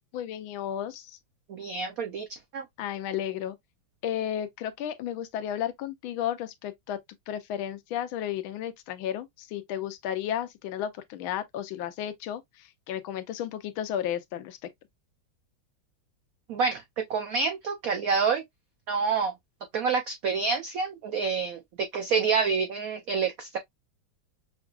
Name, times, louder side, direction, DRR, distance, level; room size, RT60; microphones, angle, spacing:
voice 1, 0.1-1.2 2.8-3.6 4.0-7.0 7.3-14.6, left 10 dB, 85° left, 1.4 m, -33 dB
voice 2, 1.5-2.3 2.5-2.6 16.5-18.4 18.9-19.3 19.7-23.6, right 5 dB, 85° right, 0.7 m, -28 dB
5.8 x 2.4 x 2.3 m
omnidirectional pair, 2.2 m